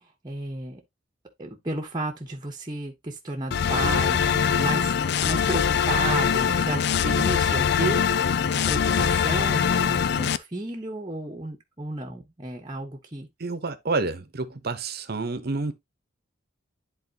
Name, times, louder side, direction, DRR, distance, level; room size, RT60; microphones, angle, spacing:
voice 1, 0.2-0.8 1.4-8.0 8.7-13.3, right 2 dB, 25° right, 1.1 m, -32 dB
sound 1, 3.5-10.4, left 7 dB, 60° left, 0.4 m, -23 dB
voice 2, 13.4-15.7, right 3 dB, 55° right, 1.0 m, -29 dB
10.5 x 4.2 x 2.8 m
head